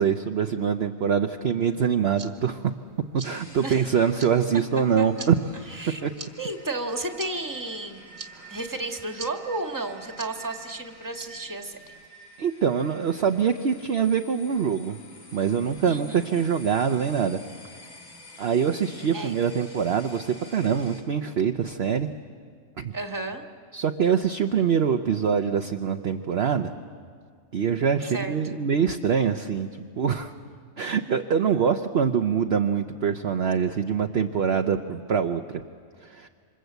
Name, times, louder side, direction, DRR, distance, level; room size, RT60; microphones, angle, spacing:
voice 1, 0.0-2.6 3.2-5.4 6.0-6.1 8.3-8.5 12.4-15.0 15.3-17.4 18.4-22.1 22.8-22.9 23.7-26.7 27.5-29.7 30.0-30.3 30.8-35.6 36.0-36.3, right 7 dB, 50° right, 6 dB, 1.0 m, -24 dB
sound 1, 1.8-12.1, right 5 dB, 80° right, 2.2 m, -47 dB
sound 2, 3.2-21.0, equal, 70° left, 3.2 m, -49 dB
voice 2, 5.7-6.0 6.4-8.2 8.5-11.9 15.9-16.2 19.1-19.3 22.9-23.4 28.1-28.7, right 2 dB, 15° right, 4 dB, 1.7 m, -33 dB
28.0 x 26.0 x 8.1 m, 2.1 s
omnidirectional pair, 1.5 m